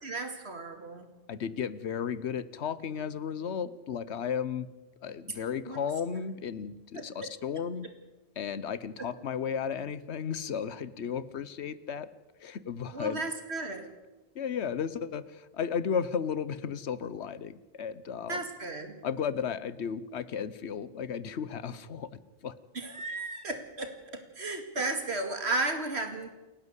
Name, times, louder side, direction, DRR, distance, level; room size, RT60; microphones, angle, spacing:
voice 1, 0.0-1.1 5.7-5.8 7.0-7.3 9.0-9.1 12.9-13.8 18.3-18.9 22.7-26.3, right 2 dB, 70° right, 6 dB, 2.7 m, -34 dB
voice 2, 1.3-4.7 5.0-7.9 8.4-12.1 12.4-13.2 14.3-18.4 19.0-22.1 22.4-22.5, left 7 dB, 75° left, 16 dB, 1.2 m, -34 dB
29.0 x 11.0 x 8.1 m, 1.1 s
omnidirectional pair, 1.1 m